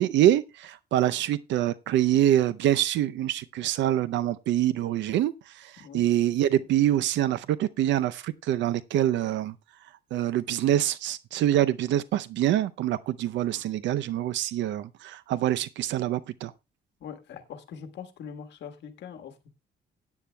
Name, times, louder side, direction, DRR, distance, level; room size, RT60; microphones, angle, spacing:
voice 1, 0.0-5.3 5.6-9.5 10.1-16.5, right 12 dB, 85° right, 0.6 m, -25 dB
voice 2, 17.0-19.5, left 7 dB, 70° left, 1.4 m, -42 dB
16.5 x 9.2 x 2.2 m
cardioid pair, 110°, 19 cm